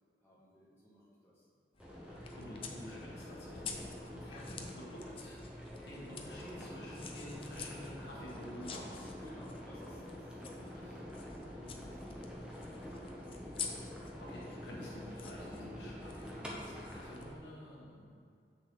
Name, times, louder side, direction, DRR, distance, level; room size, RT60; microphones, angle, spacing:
voice 1, 0.2-1.5 6.4-6.7 9.1-11.0 11.5-13.3, equal, 15° left, -10 dB, 1.8 m, -58 dB
sound 1, 1.7-17.3, left 6 dB, 30° left, 0.5 m, -50 dB
sound 2, 1.8-17.3, equal, 5° right, 0.8 m, -47 dB
voice 2, 2.0-9.1 14.2-18.2, equal, 75° left, -5 dB, 1.5 m, -50 dB
6.4 x 6.1 x 3.9 m, 2.3 s
head